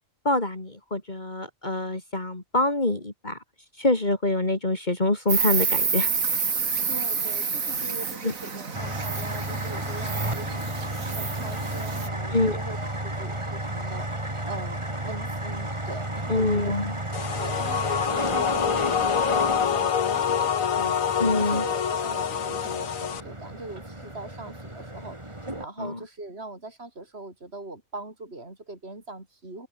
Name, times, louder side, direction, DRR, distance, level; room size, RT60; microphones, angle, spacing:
voice 1, 0.2-3.4 3.8-6.1 8.2-8.3 12.3-12.6 16.3-17.0 21.2-21.6 25.8-26.0, left 2 dB, 35° left, 2.9 m, -25 dB
Insect, 5.3-12.1, right 5 dB, 85° right, 2.6 m, -29 dB
voice 2, 6.6-16.8 17.4-29.7, right 2 dB, 50° right, 5.5 m, -41 dB
sound 1, 8.7-25.7, right 1 dB, 20° right, 3.8 m, -33 dB
sound 2, 17.1-23.2, left 8 dB, 80° left, 1.6 m, -26 dB
omnidirectional pair, 1.4 m